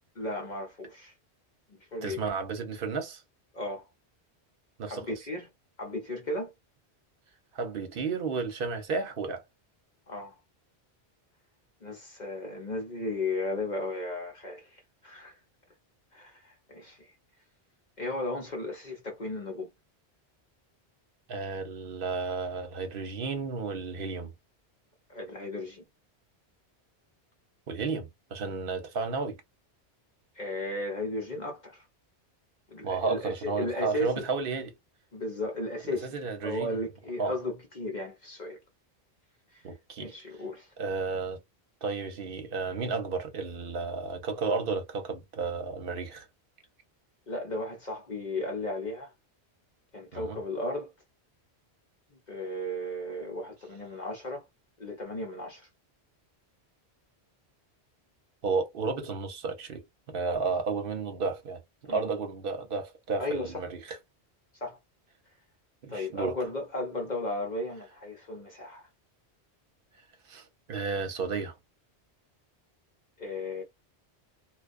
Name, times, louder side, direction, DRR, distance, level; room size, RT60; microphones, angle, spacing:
voice 1, 0.2-1.1 1.7-2.2 3.5-3.8 4.9-5.5 5.8-6.5 10.1-10.3 11.8-15.4 16.1-17.0 18.0-19.7 25.1-25.8 30.4-31.8 32.7-34.2 35.1-36.1 36.4-38.6 40.0-40.7 47.3-49.1 49.9-50.9 52.3-54.4 54.8-55.7 61.9-62.0 63.2-63.6 64.6-64.8 65.9-68.9 73.2-73.6, left 2 dB, 45° left, 0.8 m, -35 dB
voice 2, 2.0-3.2 4.8-5.1 7.5-9.4 21.3-24.3 27.7-29.4 32.8-34.7 36.0-36.8 37.2-37.4 39.6-40.1 40.8-41.4 41.8-46.3 50.1-50.4 58.4-61.6 61.9-64.0 65.8-66.3 70.3-71.5, right 4 dB, 60° right, 0.9 m, -32 dB
2.3 x 2.2 x 2.4 m
omnidirectional pair, 1.1 m